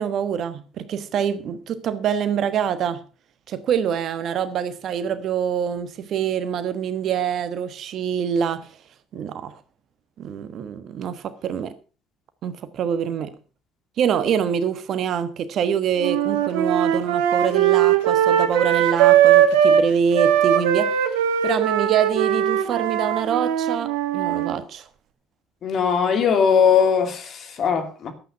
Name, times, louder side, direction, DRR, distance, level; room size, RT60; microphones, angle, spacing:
voice 1, 0.0-3.0 3.5-8.7 9.1-9.6 10.2-11.7 12.4-13.3 14.0-21.0 21.4-24.8, right 8 dB, 60° right, 1.3 m, -25 dB
sound 1, 16.0-19.8 20.1-24.5, right 10 dB, 80° right, 1.4 m, -19 dB
voice 2, 25.6-28.1, left 7 dB, 55° left, 2.5 m, -19 dB
11.5 x 8.7 x 5.6 m
hypercardioid pair, 55°, 0 cm